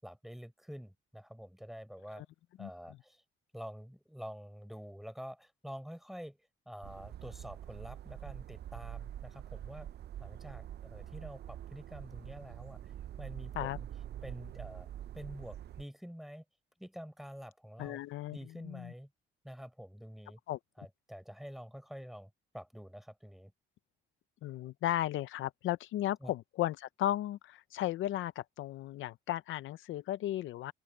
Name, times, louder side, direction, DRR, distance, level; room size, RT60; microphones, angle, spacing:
voice 1, 0.0-2.3 2.6-3.2 3.5-6.4 6.7-9.9 10.2-12.8 13.2-13.9 14.2-14.9 15.1-16.4 16.8-18.0 18.3-19.1 19.4-20.4 20.8-23.5 26.2-26.3, equal, ahead, 5.7 m, -47 dB
voice 2, 2.6-3.0 13.5-13.8 17.8-18.4 18.6-18.9 20.5-20.6 24.4-30.7, left 13 dB, 80° left, 0.6 m, -35 dB
sound 1, 6.8-15.8, right 11 dB, 55° right, 0.5 m, -45 dB
open air
cardioid pair, 90°, 20 cm